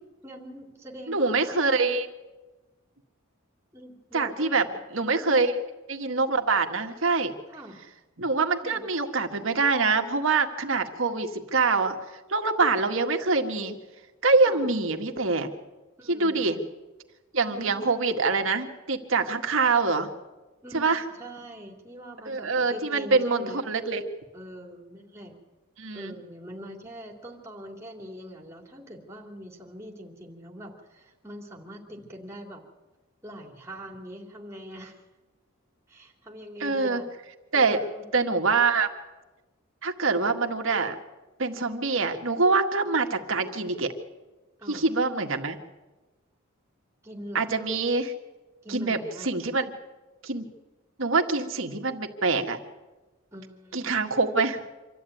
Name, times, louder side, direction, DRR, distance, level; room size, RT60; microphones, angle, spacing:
voice 1, 0.2-1.6 3.7-4.8 5.2-5.4 7.5-7.8 8.6-8.8 10.7-10.8 14.5-14.7 16.0-16.5 17.5-17.8 20.6-23.7 24.3-25.3 25.9-32.6 33.2-35.0 35.9-37.1 37.5-38.1 44.6-44.8 47.0-47.5 48.6-49.3 53.3-54.3, equal, 15° right, 1 dB, 3.0 m, -43 dB
voice 2, 1.1-2.1 4.1-4.7 4.9-5.5 5.9-7.3 8.2-12.0 12.3-13.8 14.2-15.5 16.1-16.6 17.3-20.1 20.7-21.0 22.3-24.0 25.8-26.1 36.6-37.0 37.5-37.8 38.1-38.9 39.8-41.0 41.4-43.9 44.7-45.6 47.3-48.1 48.7-49.6 50.2-50.5 51.0-52.6 53.7-54.6, right 4 dB, 65° right, 5 dB, 1.8 m, -25 dB
26.0 x 13.5 x 9.3 m, 1.2 s
head